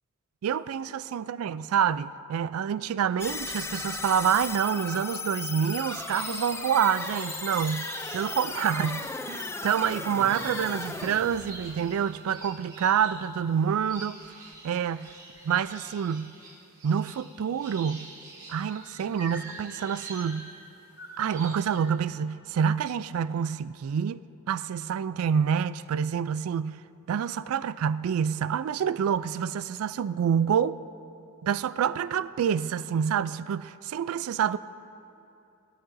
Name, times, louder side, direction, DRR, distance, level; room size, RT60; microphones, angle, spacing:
voice 1, 0.4-14.4 14.6-15.1 15.4-16.3 16.8-18.1 18.5-20.5 21.2-26.8 27.1-30.8 31.4-34.6, right 8 dB, 75° right, 0.3 m, -27 dB
sound 1, 3.2-12.4, left 3 dB, 10° left, 0.3 m, -36 dB
sound 2, 5.9-21.9, right 2 dB, 20° right, 3.0 m, -46 dB
20.0 x 12.5 x 2.6 m
head